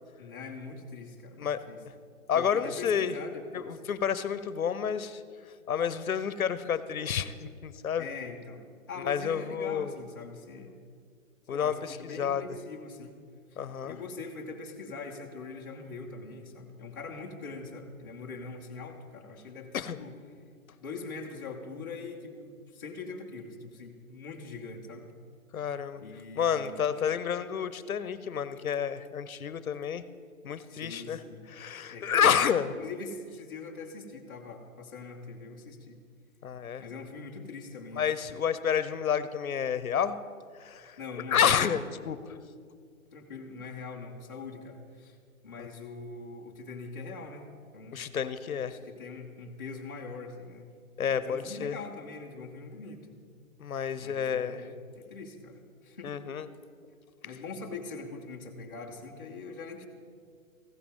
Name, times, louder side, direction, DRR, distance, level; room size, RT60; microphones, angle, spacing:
voice 1, 0.2-1.8 2.3-3.8 8.0-8.6 8.9-10.7 11.5-13.1 13.8-20.1 20.8-25.1 26.0-26.8 30.7-31.5 31.9-32.3 32.8-36.0 36.8-38.1 41.0-41.7 43.1-45.2 45.4-47.5 47.7-48.0 48.6-50.7 51.1-53.0 54.0-56.1 57.2-59.8, left 4 dB, 15° left, -5 dB, 0.6 m, -42 dB
voice 2, 2.3-3.1 3.7-5.2 5.7-8.1 9.1-10.0 11.5-12.4 13.6-14.0 19.7-20.0 25.5-26.0 26.4-30.0 30.4-31.2 31.5-32.7 36.4-36.8 37.9-40.2 40.6-41.0 41.3-42.2 45.6-45.7 47.9-48.8 51.0-51.8 53.6-54.6 56.0-56.5, left 8 dB, 70° left, 14 dB, 0.8 m, -29 dB
15.0 x 14.5 x 3.6 m, 2.1 s
hypercardioid pair, 160°, 43 cm